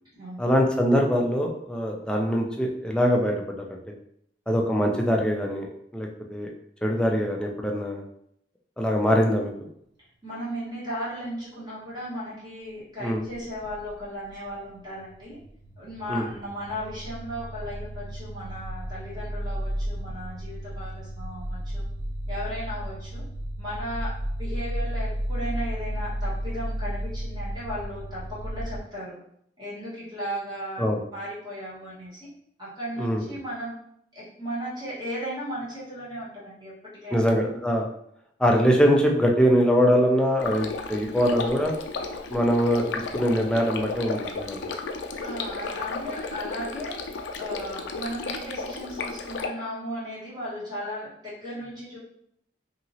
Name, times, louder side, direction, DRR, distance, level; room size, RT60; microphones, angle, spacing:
voice 1, 0.4-3.8 4.5-5.7 5.9-6.5 6.8-8.0 8.8-9.5 13.0-13.2 16.1-16.2 30.8-31.0 33.0-33.2 37.1-37.8 38.4-41.7 42.3-44.6, equal, 5° left, 0 dB, 0.4 m, -23 dB
voice 2, 10.2-15.4 15.8-21.8 22.3-23.2 23.6-29.1 29.6-30.9 31.1-32.3 32.6-33.8 34.1-36.7 37.0-37.2 45.2-47.0 47.4-52.0, equal, 25° right, -10 dB, 1.5 m, -36 dB
sound 1, 13.3-14.7 15.0-28.8, equal, 75° right, 0.6 m, -33 dB
Stream, 40.4-49.5, left 4 dB, 85° left, 0.4 m, -34 dB
2.9 x 2.8 x 2.7 m, 0.71 s
head